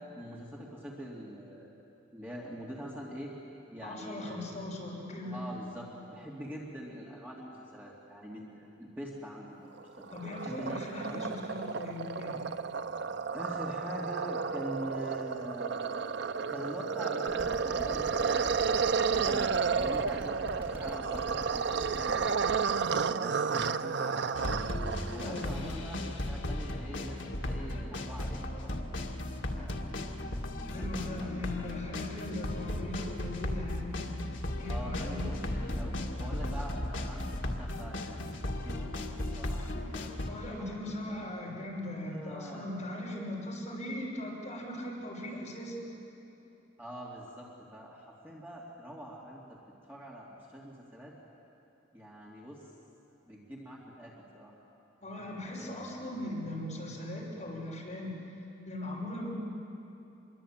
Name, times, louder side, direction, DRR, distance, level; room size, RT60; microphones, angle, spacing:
voice 1, 0.1-1.7 2.1-3.3 3.7-4.7 5.3-9.6 10.0-10.1 10.4-11.3 13.3-15.9 16.5-18.9 19.2-22.4 23.1-24.3 25.1-28.8 29.5-29.8 30.6-31.4 34.7-38.3 38.6-40.2 40.7-41.1 42.0-42.7 46.8-49.6 49.9-51.1 51.9-52.6 53.2-54.5 55.6-56.2, equal, 10° right, -4 dB, 2.6 m, -44 dB
voice 2, 3.8-5.4 10.1-12.5 25.2-25.7 30.7-34.1 34.6-35.3 40.2-45.7 55.0-58.1 58.7-59.3, left 1 dB, 35° left, -3 dB, 5.9 m, -39 dB
sound 1, 9.8-25.5, right 5 dB, 60° right, 0.5 m, -32 dB
sound 2, 17.3-22.6, right 1 dB, 25° right, 6.1 m, -41 dB
sound 3, 24.3-40.3, left 1 dB, 70° left, 2.0 m, -36 dB
26.0 x 22.5 x 8.9 m, 2.9 s
head